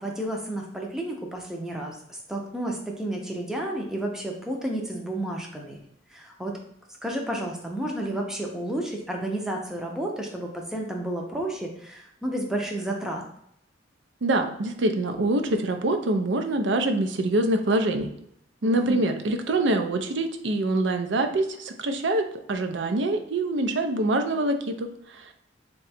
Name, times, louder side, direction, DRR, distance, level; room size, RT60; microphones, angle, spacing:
voice 1, 0.0-2.0 2.3-5.8 6.1-6.6 7.0-13.2 18.6-19.0, right 1 dB, 5° right, 0 dB, 0.5 m, -31 dB
voice 2, 14.2-18.1 18.6-25.3, right 2 dB, 70° right, 6 dB, 0.5 m, -25 dB
3.7 x 2.3 x 4.1 m, 0.73 s
head